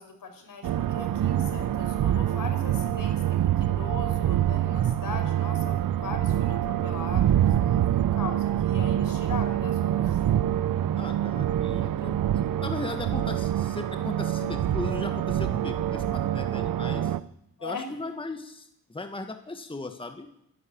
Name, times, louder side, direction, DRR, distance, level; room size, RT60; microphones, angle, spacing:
voice 1, 0.0-10.2 17.6-17.9, left 5 dB, 70° left, 6 dB, 5.1 m, -40 dB
sound 1, 0.6-17.2, right 11 dB, 70° right, 0.8 m, -26 dB
voice 2, 11.0-17.2 17.6-20.3, left 2 dB, 15° left, 6 dB, 1.7 m, -37 dB
27.5 x 11.0 x 8.7 m, 0.79 s
cardioid pair, 90°, 34 cm